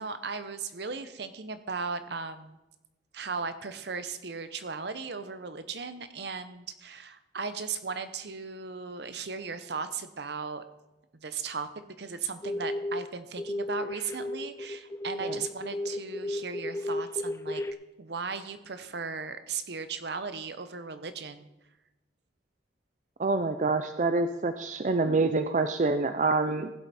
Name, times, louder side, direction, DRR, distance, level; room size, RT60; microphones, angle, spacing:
voice 1, 0.0-2.6 3.1-10.6 11.1-11.7 12.0-17.6 18.0-21.5, right 5 dB, 65° right, 11 dB, 0.8 m, -37 dB
sound 1, 12.4-13.0 13.4-17.7, left 1 dB, 15° left, 0.4 m, -33 dB
voice 2, 23.2-26.7, right 3 dB, 40° right, 9 dB, 0.5 m, -26 dB
15.5 x 8.1 x 4.3 m, 0.98 s
head